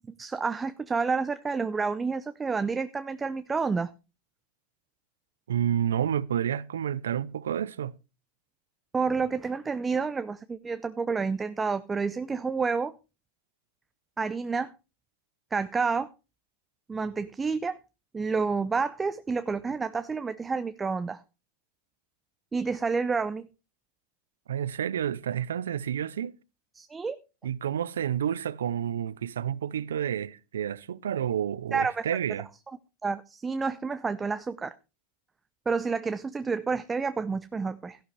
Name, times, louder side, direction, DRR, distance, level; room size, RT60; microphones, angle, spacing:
voice 1, 0.2-3.9 8.9-12.9 14.2-14.7 15.5-16.1 16.9-17.8 18.1-21.2 22.5-23.5 26.8-27.2 31.7-32.0 33.0-34.7 35.7-38.0, right 4 dB, 15° right, 0.6 m, -29 dB
voice 2, 5.5-7.9 24.5-26.3 27.4-32.5, right 9 dB, 90° right, 0.5 m, -30 dB
14.0 x 11.5 x 3.3 m
hypercardioid pair, 110°, 0 cm